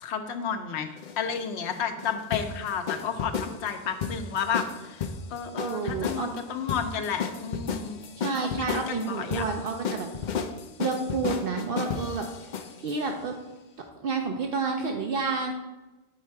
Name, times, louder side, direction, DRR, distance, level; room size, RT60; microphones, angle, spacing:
voice 1, 0.0-8.0 8.4-9.4, left 7 dB, 85° left, 7 dB, 0.9 m, -32 dB
sound 1, 1.0-13.0, left 6 dB, 55° left, 0.6 m, -34 dB
voice 2, 5.6-6.3 8.2-10.1 10.8-12.3 12.8-13.4 14.0-15.5, right 4 dB, 65° right, 3 dB, 0.7 m, -29 dB
6.6 x 4.2 x 4.6 m, 1.1 s
omnidirectional pair, 1.1 m